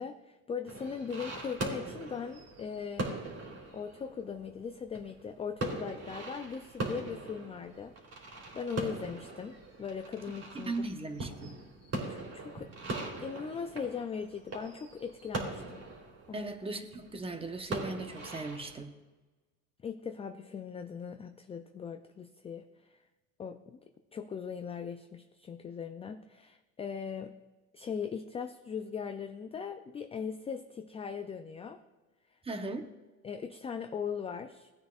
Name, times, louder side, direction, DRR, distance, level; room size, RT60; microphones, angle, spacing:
voice 1, 0.0-3.2 3.7-10.7 12.1-12.7 13.2-15.9 16.3-16.4 19.8-23.0 23.4-23.8 24.1-27.3 27.7-31.8 33.2-34.7, left 6 dB, 15° left, 8 dB, 0.4 m, -39 dB
sound 1, 0.7-18.8, right 2 dB, 40° right, 3.4 m, -41 dB
voice 2, 10.5-11.6 16.3-19.0 32.4-32.9, right 2 dB, 15° right, 7 dB, 1.0 m, -38 dB
17.5 x 9.1 x 2.4 m, 1.2 s
supercardioid pair, 100°, 38 cm